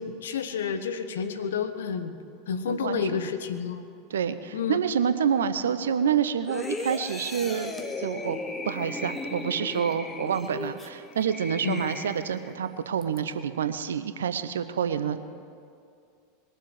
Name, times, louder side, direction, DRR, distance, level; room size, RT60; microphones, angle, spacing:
voice 1, 0.0-2.1 2.5-3.8 4.5-4.8 11.6-11.8, left 6 dB, 70° left, 9 dB, 1.0 m, -30 dB
voice 2, 2.7-3.2 4.1-7.7 8.0-8.4 8.6-15.2, right 8 dB, 70° right, 11 dB, 0.7 m, -28 dB
sound 1, 6.5-12.6 13.0-13.2, left 2 dB, 15° left, 1.3 m, -36 dB
21.5 x 7.4 x 8.0 m, 2.4 s
figure-of-eight pair, 85°, 0 cm